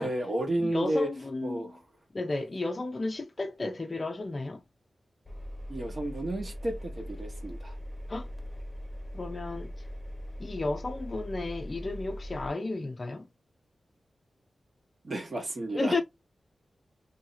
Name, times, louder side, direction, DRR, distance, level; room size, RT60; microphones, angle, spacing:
voice 1, 0.0-1.1 1.4-1.8 5.7-7.8 15.0-15.9, right 1 dB, 45° right, 1.2 m, -32 dB
voice 2, 0.6-1.7 2.1-4.6 8.1-8.3 9.1-9.7 10.4-13.3 15.7-16.0, left 2 dB, 35° left, 0.4 m, -33 dB
Engine, 5.2-12.5, equal, 15° left, 1.0 m, -40 dB
2.8 x 2.7 x 3.9 m
wide cardioid pair, 100°, 0 cm